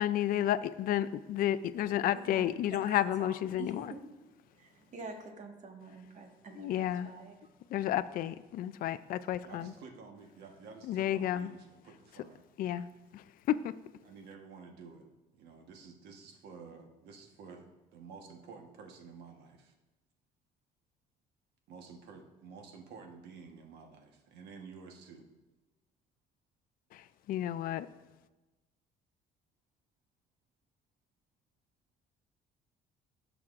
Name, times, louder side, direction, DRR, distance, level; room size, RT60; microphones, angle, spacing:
voice 1, 0.0-3.9 6.6-7.1 7.7-9.7 10.8-11.5 12.6-12.9 13.1-13.7 26.9-27.9, left 12 dB, 60° left, 13 dB, 0.4 m, -31 dB
voice 2, 2.1-4.0 4.5-7.3, right 3 dB, 45° right, 2 dB, 1.6 m, -47 dB
voice 3, 9.4-12.5 14.0-15.1 15.3-19.7 21.7-25.3, right 5 dB, 80° right, 3 dB, 1.3 m, -51 dB
15.0 x 5.9 x 2.5 m, 1.1 s
cardioid pair, 110°, 17 cm